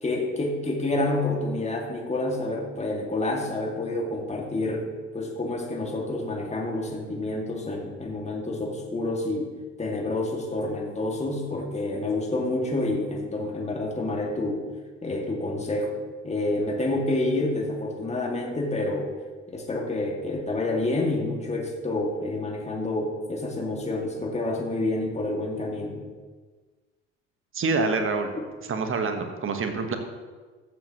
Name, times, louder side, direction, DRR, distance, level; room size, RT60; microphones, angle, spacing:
voice 1, 0.0-9.5 9.8-14.6 15.0-15.9 16.2-19.1 19.5-26.0 28.3-28.4, left 2 dB, 20° left, 1 dB, 2.1 m, -28 dB
voice 2, 27.5-28.3 28.7-30.0, right 4 dB, 35° right, 6 dB, 1.4 m, -26 dB
14.5 x 7.8 x 3.0 m, 1.4 s
figure-of-eight pair, 60°, 37 cm